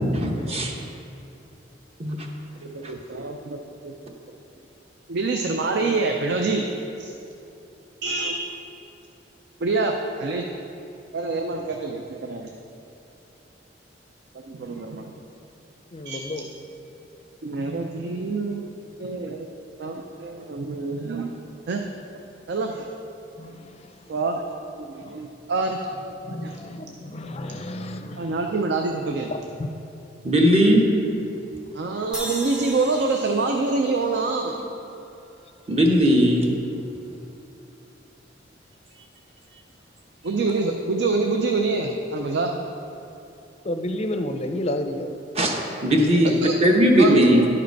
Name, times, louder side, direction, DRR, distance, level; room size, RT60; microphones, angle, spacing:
voice 1, 0.1-0.7 2.0-2.3 2.8-2.9 30.2-30.8 35.7-36.5 45.3-47.5, equal, 35° right, 1 dB, 0.9 m, -18 dB
voice 2, 2.6-4.1 5.1-6.6 7.0-7.1 8.0-8.4 9.6-10.4 11.1-12.5 14.5-15.1 16.0-16.2 17.4-18.6 19.0-19.5 19.8-21.3 21.7-21.8 22.5-22.8 24.1-24.4 24.7-25.8 26.3-26.5 28.2-29.3 31.7-34.5 40.2-42.6 46.4-46.5 47.0-47.5, right 3 dB, 65° right, 3 dB, 0.5 m, -26 dB
voice 3, 15.9-16.4 23.4-24.1 25.0-25.2 26.3-28.4 29.3-29.7 31.7-31.9 43.6-45.2, left 1 dB, 35° left, 6 dB, 0.5 m, -31 dB
sound 1, 32.1-35.4, equal, 5° right, 0.7 m, -38 dB
11.0 x 5.0 x 4.6 m, 2.8 s
head